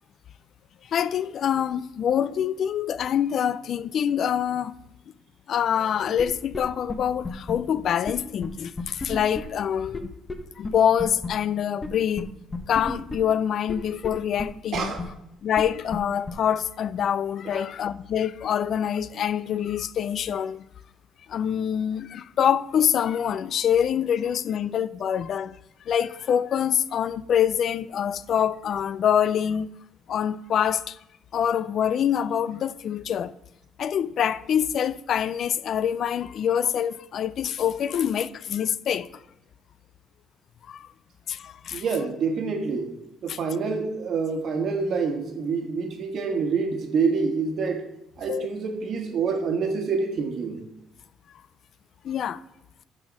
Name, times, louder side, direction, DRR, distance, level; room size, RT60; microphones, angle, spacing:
voice 1, 0.9-4.7 5.5-10.1 10.6-12.3 12.7-14.9 15.4-20.6 21.3-25.6 25.9-29.7 30.1-31.0 31.3-33.3 33.8-39.2 40.7-40.9 41.3-41.8 43.3-43.4 48.3-48.5 52.0-52.4, left 9 dB, 55° left, 0.3 m, -25 dB
sound 1, 6.2-6.3 6.5-6.6 6.9-7.0 7.2-7.5 8.1-8.2 8.4-8.5 8.8-9.4 9.9-10.0 10.3-10.4 10.6-10.7 11.0-11.3 11.8-11.9 12.2-12.3 12.5-13.2 13.7-13.8 14.0-14.1 14.4-14.5 14.7-15.0 15.6-15.7 15.9-16.0 16.3-16.4, left 3 dB, 20° left, 0.9 m, -31 dB
voice 2, 14.7-15.0 17.4-17.7 41.7-42.9 43.2-47.9 48.2-50.6, right 5 dB, 55° right, 1.3 m, -27 dB
9.7 x 4.1 x 6.2 m
cardioid pair, 115°, 0 cm